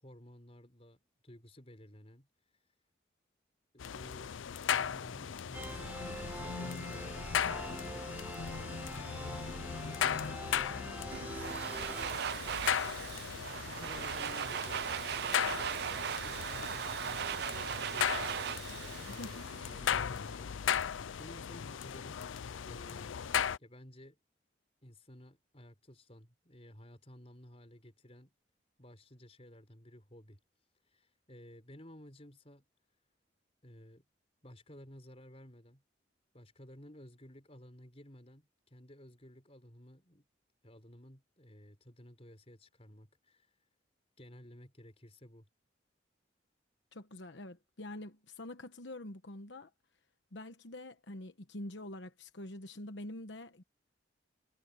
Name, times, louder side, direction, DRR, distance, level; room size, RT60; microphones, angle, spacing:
voice 1, 0.0-2.3 3.7-4.4 4.7-8.9 9.5-10.5 11.2-12.8 13.6-15.7 16.2-23.1 23.6-24.2 24.8-28.3 28.8-30.4 30.9-32.6 33.6-34.0 34.4-35.8 36.3-40.3 40.6-43.5 44.2-45.5, equal, 30° left, 5.4 m, -54 dB
sound 1, 3.8-23.6, left 8 dB, 85° left, 0.5 m, -37 dB
sound 2, 5.5-12.1, right 1 dB, 10° right, 1.5 m, -44 dB
Domestic sounds home sounds, 11.1-20.0, right 8 dB, 55° right, 0.4 m, -38 dB
voice 2, 19.1-19.5 46.9-49.7 50.3-53.6, left 1 dB, 70° left, 1.1 m, -46 dB
head